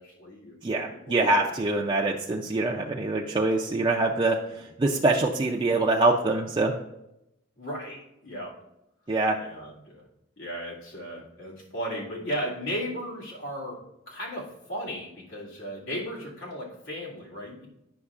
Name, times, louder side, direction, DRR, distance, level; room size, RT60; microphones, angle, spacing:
voice 1, 0.0-0.6 0.9-1.3 1.9-2.0 4.5-4.6 7.6-8.6 9.4-10.0 10.4-13.8 14.1-17.7, equal, 90° left, -4 dB, 2.3 m, -36 dB
voice 2, 0.6-4.4 4.8-6.7 9.1-9.4, right 2 dB, 25° right, -1 dB, 0.4 m, -24 dB
9.5 x 6.1 x 2.4 m, 0.86 s
head